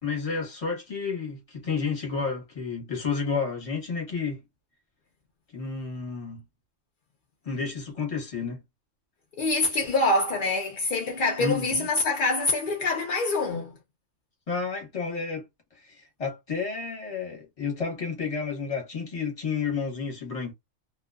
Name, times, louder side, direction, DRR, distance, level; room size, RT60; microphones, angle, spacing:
voice 1, 0.0-4.4 5.5-6.4 7.4-8.6 11.4-11.6 14.5-15.5 15.7-20.5, left 5 dB, 30° left, 0.9 m, -31 dB
voice 2, 9.4-13.8, left 2 dB, 65° left, 0.5 m, -25 dB
2.4 x 2.2 x 2.3 m
omnidirectional pair, 1.4 m